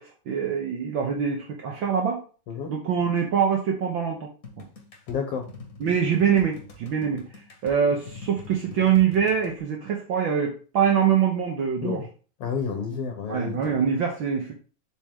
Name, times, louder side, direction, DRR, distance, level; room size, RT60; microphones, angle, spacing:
voice 1, 0.0-2.2 2.7-4.3 5.8-12.0 13.3-14.5, right 7 dB, 70° right, 1 dB, 1.1 m, -24 dB
sound 1, 4.4-9.6, left 3 dB, 35° left, 1.6 m, -43 dB
voice 2, 5.1-5.5 11.8-12.1 12.4-13.7, left 6 dB, 65° left, 4 dB, 1.6 m, -30 dB
7.5 x 5.1 x 3.7 m, 0.37 s
omnidirectional pair, 3.8 m